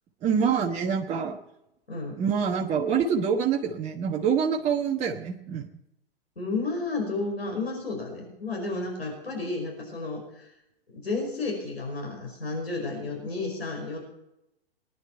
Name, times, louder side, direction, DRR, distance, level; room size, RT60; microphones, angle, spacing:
voice 1, 0.2-1.4 2.2-5.7, right 7 dB, 25° right, 0 dB, 1.3 m, -26 dB
voice 2, 6.4-10.5 10.9-14.0, left 3 dB, 90° left, 0 dB, 5.2 m, -32 dB
21.0 x 10.5 x 4.5 m, 0.85 s
figure-of-eight pair, 115°, 30 cm